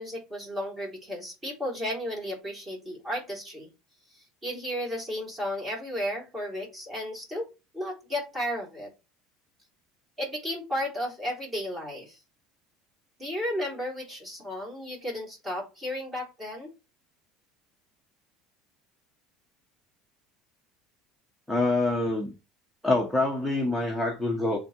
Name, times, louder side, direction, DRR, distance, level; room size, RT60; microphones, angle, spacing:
voice 1, 0.0-3.7 4.4-7.4 7.7-8.9 10.2-12.2 13.2-16.7, equal, 15° right, 3.8 m, -33 dB
voice 2, 21.5-22.3 22.8-24.6, left 2 dB, ahead, 1.1 m, -26 dB
7.9 x 3.7 x 4.4 m
cardioid pair, 150°, 0 cm